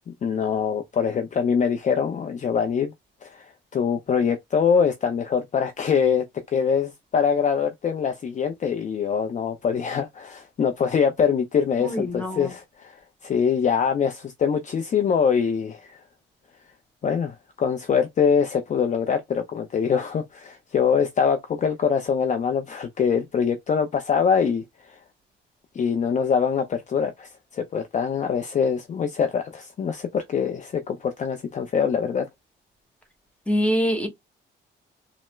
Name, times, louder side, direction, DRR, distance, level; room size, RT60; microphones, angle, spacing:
voice 1, 0.1-2.9 3.2-16.0 17.0-25.0 25.7-32.3, left 6 dB, 40° left, 0.5 m, -24 dB
voice 2, 11.8-12.5 33.5-34.1, equal, 5° left, 1.0 m, -24 dB
3.1 x 2.0 x 3.0 m
cardioid pair, 90°, 20 cm